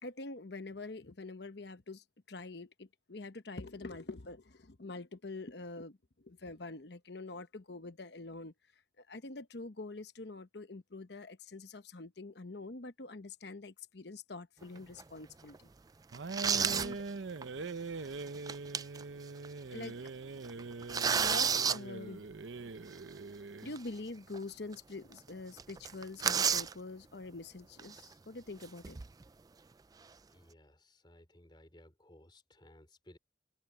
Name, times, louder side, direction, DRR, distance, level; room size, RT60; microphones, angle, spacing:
voice 1, 0.0-8.5 9.0-15.7 16.6-17.0 19.7-20.0 21.1-22.2 23.6-29.0, left 3 dB, 60° left, 1.0 m, -45 dB
sound 1, 14.8-15.0 15.5-15.6 16.1-16.9 17.4-17.5 18.3-19.0 19.4-19.5 19.8-20.1 20.4-21.8 23.8-23.9 24.3-24.4 24.7-24.8 25.1-25.3 25.6-26.7 27.8-28.0 28.6-29.2, right 6 dB, 20° right, 0.3 m, -31 dB
sound 2, 16.1-23.8, right 3 dB, 75° right, 0.7 m, -43 dB
voice 2, 30.3-33.2, left 1 dB, 25° left, 4.0 m, -59 dB
open air
head